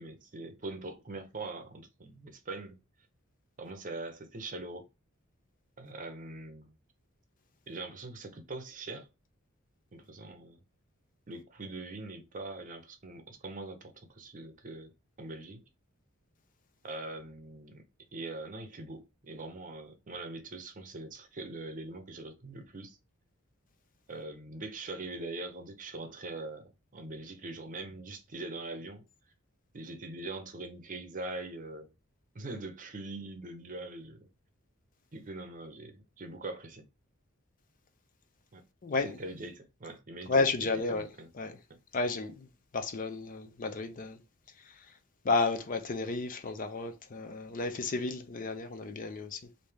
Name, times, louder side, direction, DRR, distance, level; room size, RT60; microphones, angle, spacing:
voice 1, 0.0-2.8 3.6-4.9 5.8-6.7 7.7-9.1 9.9-10.6 11.3-14.9 15.2-15.6 16.8-17.8 18.1-23.0 24.1-29.0 29.7-31.9 32.3-34.3 35.1-36.9 38.5-38.6 39.0-40.5 40.7-41.3 41.7-41.8, right 2 dB, 40° right, 0.7 m, -42 dB
voice 2, 38.8-39.2 40.3-41.1 41.3-41.6 41.9-42.5 42.7-44.2 45.2-49.4, left 3 dB, 40° left, 0.5 m, -32 dB
3.2 x 2.7 x 3.3 m
head